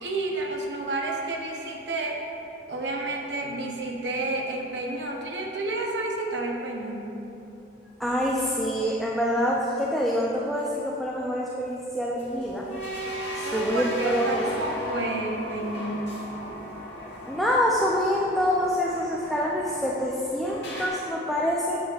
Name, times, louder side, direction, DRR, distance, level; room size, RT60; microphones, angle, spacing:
voice 1, 0.0-2.2 2.7-7.1 13.4-16.1, right 2 dB, 75° right, 0 dB, 0.8 m, -30 dB
voice 2, 8.0-12.7 13.3-14.4 17.3-21.8, equal, ahead, -5 dB, 0.4 m, -26 dB
sound 1, 12.2-20.9, equal, 70° left, 1.5 m, -36 dB
8.5 x 7.6 x 2.5 m, 2.8 s
head